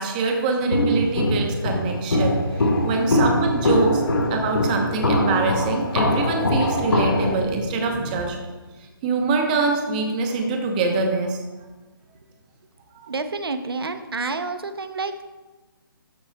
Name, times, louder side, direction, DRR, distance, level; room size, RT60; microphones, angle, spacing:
voice 1, 0.0-2.4 2.6-4.0 4.3-8.4 8.8-11.4 12.9-13.1, right 3 dB, 20° right, 2 dB, 1.0 m, -24 dB
Walk footsteps, 0.7-7.4, left 1 dB, 75° left, 1.7 m, -22 dB
voice 2, 3.0-3.5 13.1-15.2, right 3 dB, 80° right, 9 dB, 0.9 m, -29 dB
sound 1, 3.3-8.3, left 2 dB, 5° left, 0.4 m, -35 dB
12.5 x 7.5 x 2.4 m, 1.2 s
hypercardioid pair, 160°, 12 cm